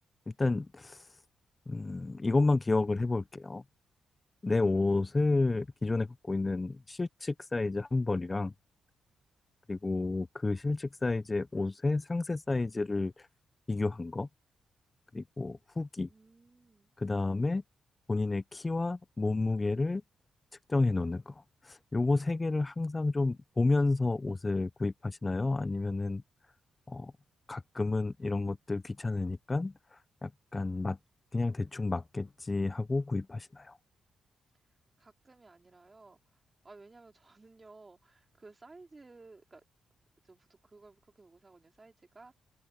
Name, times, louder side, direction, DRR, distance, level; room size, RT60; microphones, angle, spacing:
voice 1, 0.3-1.0 1.7-3.6 4.4-8.5 9.7-13.3 13.7-14.3 15.1-16.1 17.0-17.6 18.1-20.0 20.7-26.2 26.9-27.1 27.5-31.0 31.3-33.8, left 3 dB, 25° left, 0.7 m, -31 dB
voice 2, 16.0-16.9 35.0-39.6 40.2-42.3, right 3 dB, 30° right, 4.2 m, -56 dB
open air
cardioid pair, 70°, 0 cm